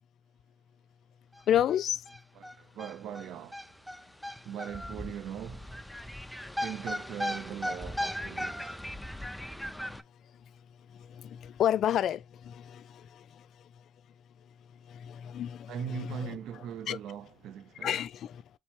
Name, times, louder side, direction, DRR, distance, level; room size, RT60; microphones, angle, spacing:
sound 1, 1.4-1.5 1.7-1.8 2.1-10.0, left 1 dB, 5° left, 0.4 m, -37 dB
voice 1, 1.5-2.0 11.1-13.2 14.9-17.0 17.8-18.4, left 10 dB, 70° left, 0.3 m, -31 dB
voice 2, 2.4-3.6 4.4-5.7 6.6-8.8 15.7-18.0, right 9 dB, 80° right, 0.4 m, -40 dB
4.4 x 3.2 x 2.8 m
cardioid pair, 90°, 0 cm